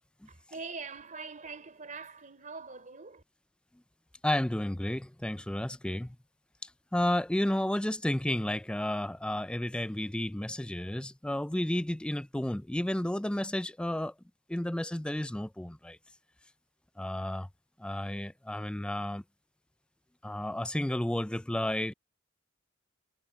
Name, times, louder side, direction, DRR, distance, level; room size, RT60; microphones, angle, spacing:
voice 1, 0.3-3.2, right 4 dB, 40° right, 3.4 m, -43 dB
voice 2, 4.2-6.1 6.9-14.1 14.5-16.0 17.0-17.5 17.8-19.2 20.2-21.9, left 1 dB, 5° left, 0.4 m, -32 dB
head